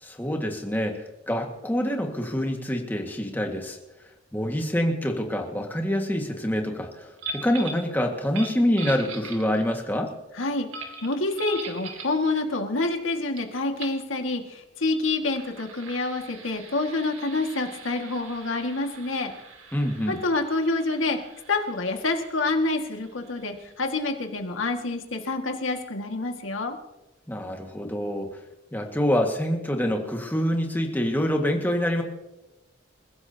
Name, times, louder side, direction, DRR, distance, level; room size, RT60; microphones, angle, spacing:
voice 1, 0.0-3.8 4.3-10.1 19.7-20.2 27.3-28.4 28.7-32.0, equal, 10° left, 2 dB, 1.8 m, -26 dB
sound 1, 7.2-7.9 8.2-9.8 10.7-12.2 13.4-13.5 13.8-14.0 15.1-24.4, right 3 dB, 85° right, 2.4 m, -42 dB
voice 2, 10.4-10.7 11.0-19.3 20.1-21.2 21.5-26.8, left 2 dB, 85° left, 4 dB, 1.9 m, -27 dB
28.0 x 16.0 x 2.9 m, 0.98 s
head